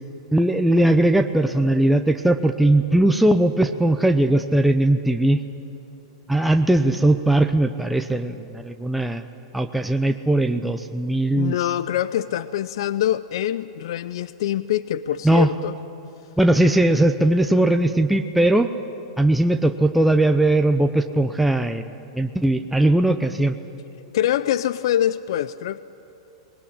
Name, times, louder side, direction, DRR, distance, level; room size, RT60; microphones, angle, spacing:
voice 1, 0.3-5.4 6.3-9.2 9.5-11.6 15.2-15.5 16.4-18.7 19.2-21.9 22.1-23.6, right 1 dB, 5° right, 6 dB, 0.7 m, -19 dB
voice 2, 11.4-15.8 24.1-25.8, left 11 dB, 70° left, 15 dB, 0.5 m, -24 dB
20.5 x 19.0 x 10.0 m, 3.0 s
hypercardioid pair, 120°, 3 cm